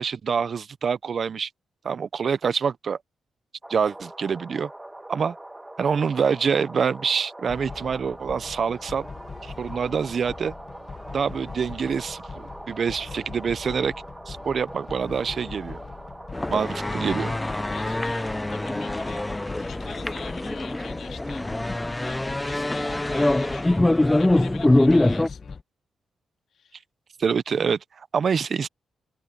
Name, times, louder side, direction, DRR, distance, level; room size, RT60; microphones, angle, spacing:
voice 1, 0.0-1.5 1.8-3.0 3.7-4.7 5.1-5.3 5.8-9.1 9.4-10.5 11.1-13.9 14.3-15.8 16.5-17.3 27.2-27.8 28.1-28.7, right 6 dB, 50° right, 0.7 m, -26 dB
sound 1, 3.6-19.4, right 1 dB, 10° right, 0.9 m, -42 dB
sound 2, 7.5-25.6, left 4 dB, 40° left, 1.3 m, -41 dB
sound 3, 16.3-25.3, left 1 dB, 10° left, 0.5 m, -24 dB
voice 2, 17.7-19.2 19.5-21.4 22.0-25.6 26.5-26.8, left 8 dB, 70° left, 3.2 m, -45 dB
cardioid pair, 110°, 0 cm